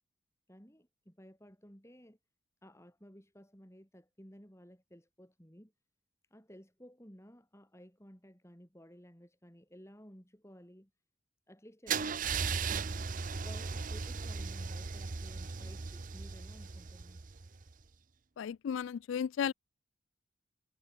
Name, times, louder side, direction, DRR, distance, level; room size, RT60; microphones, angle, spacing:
voice 1, 0.5-2.2 2.6-5.7 6.3-10.9 11.5-12.3 13.4-17.2, equal, 15° left, 5.8 m, -56 dB
Car / Engine starting / Idling, 11.9-17.7, right 5 dB, 40° right, 0.7 m, -37 dB
voice 2, 18.4-19.5, left 7 dB, 70° left, 0.3 m, -34 dB
head